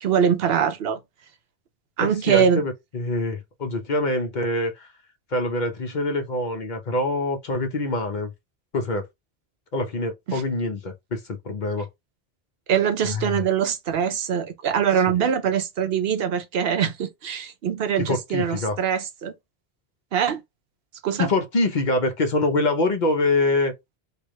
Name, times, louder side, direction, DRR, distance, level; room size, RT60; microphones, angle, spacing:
voice 1, 0.0-1.0 2.0-2.6 10.3-10.4 12.7-19.3 20.1-20.4 21.0-21.3, right 8 dB, 70° right, 0.8 m, -23 dB
voice 2, 2.0-4.9 5.3-8.3 8.7-9.1 9.7-11.9 13.1-13.4 15.1-15.2 18.0-18.8 21.2-23.7, left 2 dB, 50° left, 0.8 m, -25 dB
3.3 x 2.4 x 3.0 m
omnidirectional pair, 1.1 m